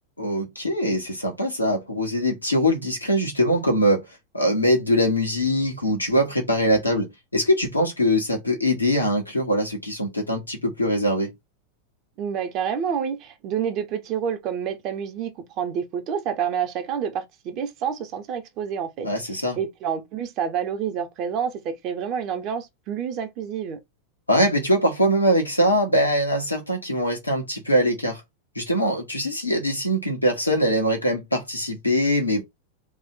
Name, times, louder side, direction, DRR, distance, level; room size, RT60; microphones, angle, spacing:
voice 1, 0.2-4.0 4.3-11.3 19.0-19.6 24.3-28.2 28.6-32.4, equal, 85° left, 1.6 m, -22 dB
voice 2, 12.2-19.1 19.6-23.8, right 7 dB, 40° right, 1.0 m, -28 dB
4.2 x 2.6 x 3.9 m
figure-of-eight pair, 90°, 0 cm